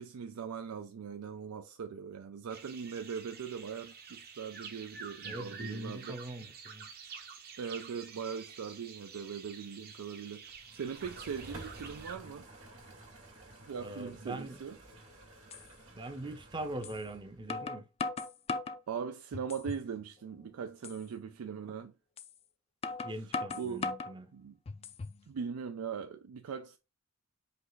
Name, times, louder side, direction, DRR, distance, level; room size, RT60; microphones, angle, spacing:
voice 1, 0.0-6.2 7.6-12.5 13.6-14.8 18.9-21.9 23.1-23.2 23.5-23.9 24.3-24.6 25.3-26.8, right 6 dB, 90° right, 0.4 m, -40 dB
sound 1, 2.5-12.2, right 6 dB, 50° right, 0.9 m, -49 dB
voice 2, 5.2-6.9 13.8-14.6 15.9-17.8 23.0-24.3, right 1 dB, 20° right, 0.6 m, -42 dB
sound 2, 10.5-17.5, right 2 dB, 70° right, 2.0 m, -52 dB
sound 3, 14.9-15.0 15.5-15.6 16.8-17.0 17.5-18.8 19.3-19.9 20.3-20.4 20.8-21.0 22.2-22.3 22.8-24.1 24.7-25.2, left 4 dB, 30° left, 0.3 m, -37 dB
5.2 x 2.4 x 3.9 m
head